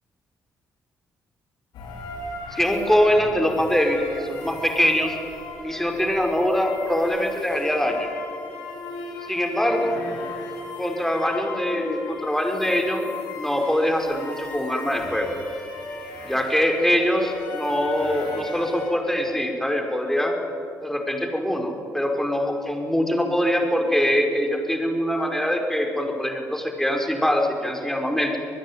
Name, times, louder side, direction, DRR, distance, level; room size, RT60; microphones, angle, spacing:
sound 1, 1.7-18.9, left 3 dB, 65° left, 5.3 m, -37 dB
voice 1, 2.5-5.2 5.6-8.1 9.3-10.0 10.8-13.1 13.4-15.3 16.2-20.3 20.8-28.4, equal, 5° left, 3 dB, 5.4 m, -23 dB
25.0 x 20.0 x 9.7 m, 2.7 s
figure-of-eight pair, 45°, 8 cm